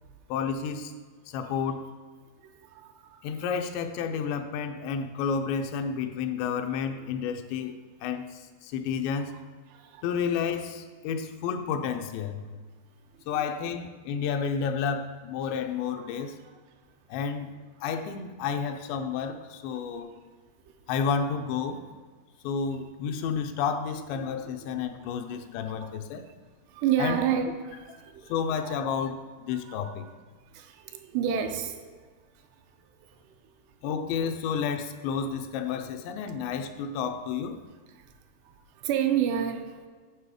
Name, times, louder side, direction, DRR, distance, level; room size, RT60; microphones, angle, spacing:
voice 1, 0.3-0.9 1.3-1.8 3.2-9.3 10.0-12.5 13.3-16.4 17.1-17.6 17.8-20.1 20.9-21.8 22.4-26.3 27.0-27.2 28.3-30.1 33.8-37.6, left 6 dB, 90° left, 6 dB, 2.9 m, -31 dB
voice 2, 2.4-3.5 9.7-10.2 13.3-13.4 16.0-16.2 20.7-20.8 22.8-22.9 24.1-24.2 24.6-24.7 25.7-26.0 26.7-28.4 28.6-28.8 29.5-30.0 30.5-32.0 33.1-33.2 36.3-36.4 37.9-38.1 38.4-39.9, right 9 dB, 85° right, 6 dB, 2.7 m, -31 dB
9.4 x 6.6 x 4.8 m, 1.5 s
omnidirectional pair, 4.9 m